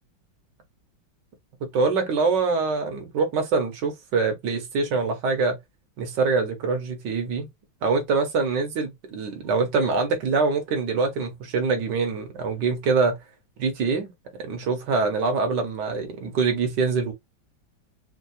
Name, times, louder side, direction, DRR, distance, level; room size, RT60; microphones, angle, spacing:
voice 1, 1.6-5.6 6.0-7.5 7.8-13.2 13.6-14.1 14.4-17.1, right 4 dB, 65° right, 1.7 m, -24 dB
4.5 x 2.3 x 2.6 m
omnidirectional pair, 2.1 m